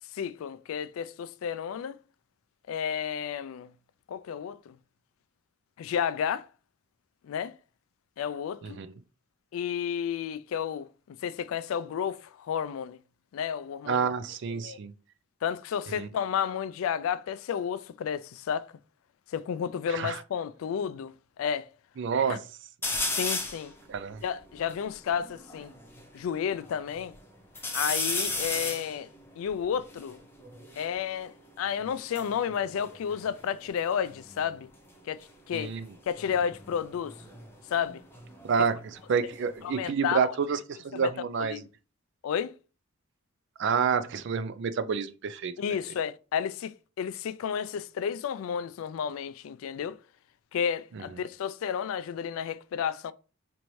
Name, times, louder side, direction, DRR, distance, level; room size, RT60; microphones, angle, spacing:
voice 1, 0.1-2.0 2.7-3.7 4.1-4.8 5.8-6.5 7.2-7.5 8.2-8.8 9.5-13.0 13.3-14.1 14.6-14.8 15.4-18.7 19.3-21.7 22.3-22.4 23.1-23.7 24.2-25.7 26.1-27.2 27.7-29.1 29.4-30.2 30.8-34.7 35.0-35.8 36.1-37.2 37.7-38.0 39.6-40.3 40.9-41.6 42.2-42.5 45.6-50.0 50.5-53.1, left 8 dB, 70° left, 0.3 m, -32 dB
voice 2, 13.9-14.9 16.0-16.1 19.9-20.2 22.0-22.4 23.9-24.2 35.5-35.9 38.4-41.6 43.6-45.5 50.9-51.0, right 6 dB, 55° right, 0.4 m, -29 dB
sound 1, 22.8-23.7 24.2-24.3 24.5-26.1 26.6-27.2 27.6-30.9 31.9-33.8 34.0-34.5 36.1-38.7 39.1-39.9, left 2 dB, 10° left, 0.7 m, -35 dB
4.4 x 2.6 x 3.0 m
head